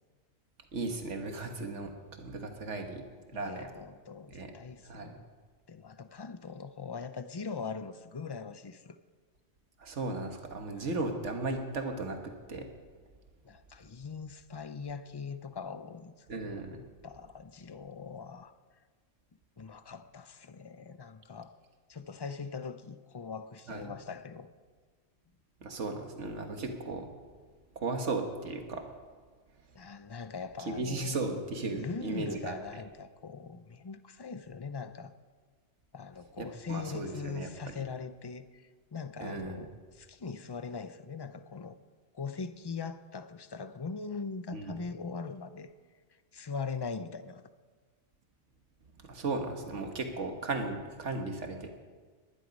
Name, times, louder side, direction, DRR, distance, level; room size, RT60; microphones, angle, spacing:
voice 1, 0.7-1.9 2.2-3.0 3.3-3.7 4.3-4.5 4.8-5.2 9.8-12.7 16.3-16.8 23.7-23.9 25.6-27.1 27.7-28.8 30.7-32.5 36.4-37.5 39.2-39.6 44.5-44.8 49.0-51.7, right 3 dB, 80° right, 4 dB, 1.8 m, -36 dB
voice 2, 3.3-5.3 5.7-9.0 10.7-10.9 13.4-16.6 17.0-18.5 19.6-21.5 21.9-24.5 29.7-31.2 31.7-35.1 35.9-41.8 42.1-45.7 46.3-47.5, left 5 dB, 35° left, 11 dB, 0.4 m, -41 dB
20.0 x 11.5 x 5.3 m, 1.5 s
omnidirectional pair, 1.2 m